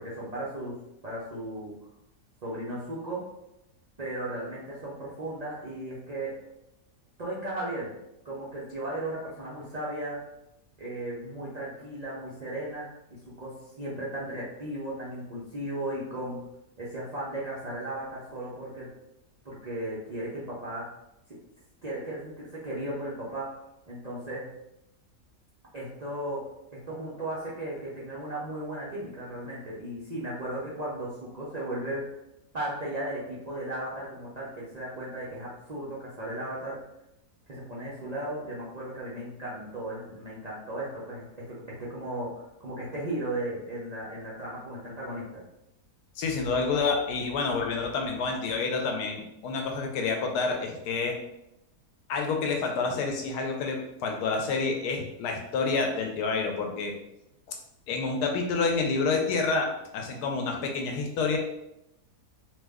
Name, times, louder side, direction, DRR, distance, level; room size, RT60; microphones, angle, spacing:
voice 1, 0.0-1.7 2.4-3.2 4.0-6.3 7.2-8.0 8.2-10.2 10.8-16.4 16.8-18.9 19.4-20.9 21.8-23.5 23.9-24.5 25.7-26.4 26.7-32.1 32.5-36.8 37.5-45.4, right 1 dB, 65° right, -7 dB, 0.4 m, -36 dB
voice 2, 46.2-51.2 52.1-56.9 57.9-59.7 59.9-61.4, left 4 dB, 85° left, 2 dB, 1.2 m, -28 dB
2.9 x 2.1 x 3.4 m, 0.85 s
omnidirectional pair, 1.7 m